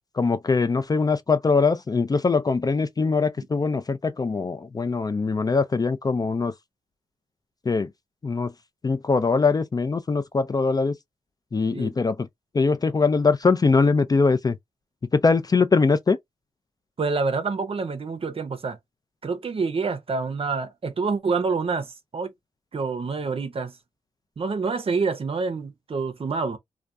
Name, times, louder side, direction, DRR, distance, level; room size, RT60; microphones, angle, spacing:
voice 1, 0.1-6.5 7.7-7.9 8.2-8.5 8.8-10.9 11.5-12.3 12.5-14.6 15.1-16.2, left 4 dB, 30° left, 0.3 m, -22 dB
voice 2, 17.0-18.8 19.2-22.3 22.7-23.8 24.4-26.6, right 4 dB, 45° right, 0.6 m, -27 dB
2.3 x 2.2 x 2.5 m
cardioid pair, 60°, 14 cm